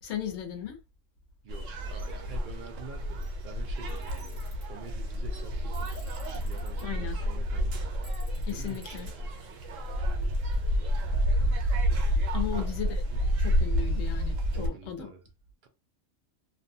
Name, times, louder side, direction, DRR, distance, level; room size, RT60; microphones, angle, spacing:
voice 1, 0.0-0.8 6.8-7.2 8.4-9.1 12.3-13.0 13.4-15.1, left 9 dB, 70° left, 1.0 m, -36 dB
voice 2, 1.4-8.0 8.5-9.3 12.4-12.7 13.1-13.2 14.5-15.2 15.6-15.7, right 5 dB, 65° right, 0.5 m, -47 dB
sound 1, 1.5-14.7, equal, 80° right, 1.0 m, -29 dB
Tools, 3.9-4.6 5.7-6.8 8.0-9.1, equal, 20° right, 1.2 m, -53 dB
2.6 x 2.1 x 2.6 m
omnidirectional pair, 1.3 m